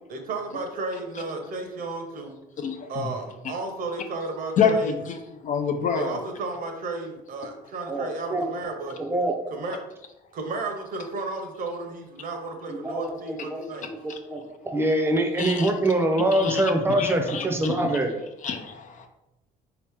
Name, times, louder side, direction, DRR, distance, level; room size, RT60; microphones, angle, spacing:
voice 1, 0.1-2.4 2.9-5.0 5.9-9.0 9.5-9.8 10.3-13.9, right 3 dB, 55° right, 3 dB, 0.9 m, -33 dB
voice 2, 2.6-3.1 4.6-5.2 5.4-6.1 15.4-15.7 16.3-16.7 17.0-17.9 18.4-19.1, left 6 dB, 50° left, 5 dB, 0.5 m, -27 dB
voice 3, 7.9-8.5 9.0-9.3 12.7-14.4 14.7-18.1, right 1 dB, 15° right, 4 dB, 0.7 m, -24 dB
4.1 x 2.9 x 3.5 m, 0.92 s
cardioid pair, 110°, 17 cm